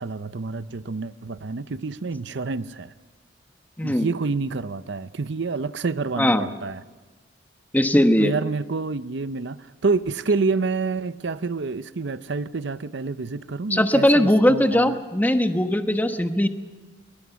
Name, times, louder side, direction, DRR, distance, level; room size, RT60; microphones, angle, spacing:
voice 1, 0.0-2.9 3.8-6.8 8.2-15.0, right 4 dB, 65° right, 14 dB, 0.7 m, -28 dB
voice 2, 7.7-8.3 13.7-16.5, left 1 dB, 10° left, 8 dB, 1.1 m, -19 dB
21.0 x 20.5 x 7.1 m, 1.3 s
head